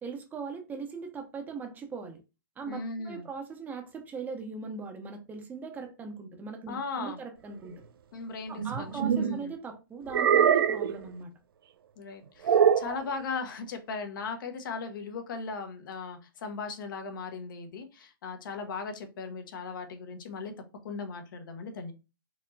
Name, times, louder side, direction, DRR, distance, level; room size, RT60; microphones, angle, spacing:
voice 1, 0.0-2.2 2.6-7.8 8.5-11.3, right 5 dB, 15° right, 0.6 m, -39 dB
voice 2, 2.6-3.3 6.7-7.2 8.1-9.5 12.0-20.5 20.8-21.9, left 4 dB, 65° left, 1.0 m, -38 dB
sound 1, 8.6-9.4 10.1-11.0 12.4-13.0, right 8 dB, 80° right, 0.4 m, -23 dB
4.3 x 2.8 x 2.6 m
hypercardioid pair, 145°, 12 cm